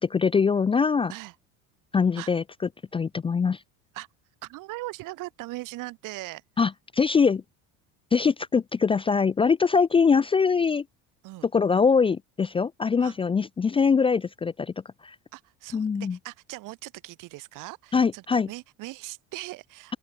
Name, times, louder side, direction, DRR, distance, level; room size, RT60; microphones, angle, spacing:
voice 1, 0.0-1.1 1.9-2.4 2.9-3.6 6.6-7.4 8.1-10.8 11.5-14.7 15.0-15.2 15.7-16.2 17.9-18.5, left 5 dB, 15° left, 0.5 m, -23 dB
voice 2, 4.4-6.4 11.2-11.5 13.0-13.2 15.3-20.0, right 19 dB, 65° right, 4.0 m, -40 dB
open air
cardioid pair, 140°, 34 cm